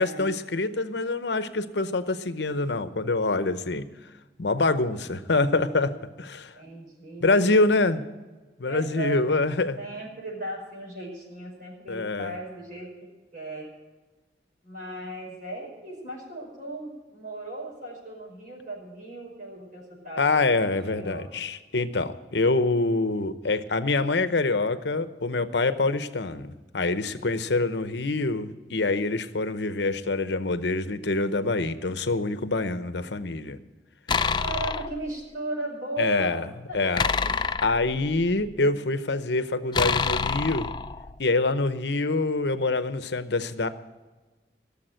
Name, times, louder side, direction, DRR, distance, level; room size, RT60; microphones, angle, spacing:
voice 1, 0.0-3.9 4.4-5.9 6.2-6.5 7.2-8.0 8.6-9.8 11.9-12.3 20.2-33.6 36.0-36.5 36.7-37.1 37.6-40.7 41.2-43.7, left 3 dB, 75° left, 12 dB, 0.9 m, -25 dB
voice 2, 4.9-6.0 6.5-7.7 8.6-9.2 9.8-13.7 14.6-21.4 34.4-36.4 36.7-37.0, right 2 dB, 50° right, -3 dB, 5.4 m, -37 dB
sound 1, 34.1-35.0 37.0-38.5 39.7-41.2, left 5 dB, 25° left, 0.4 m, -27 dB
17.5 x 7.2 x 9.0 m, 1.2 s
head